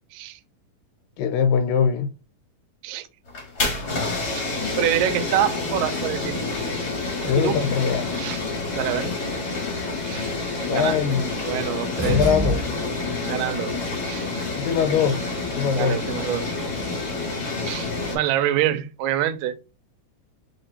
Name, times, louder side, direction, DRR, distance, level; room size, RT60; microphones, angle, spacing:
voice 1, 1.2-2.1 7.2-8.1 10.7-11.2 12.0-12.6 14.6-15.2 15.6-16.0, left 7 dB, 85° left, 2.4 m, -21 dB
sound 1, 3.3-18.2, left 3 dB, 35° left, 1.7 m, -28 dB
voice 2, 4.8-6.4 7.3-7.6 8.1-8.4 8.7-9.1 10.0-10.3 10.7-11.0 11.5-12.3 13.2-13.7 14.0-14.3 15.7-16.5 17.6-19.6, right 11 dB, 80° right, 2.2 m, -26 dB
sound 2, 12.0-13.2, right 2 dB, 45° right, 0.4 m, -27 dB
4.3 x 4.3 x 2.7 m
omnidirectional pair, 4.0 m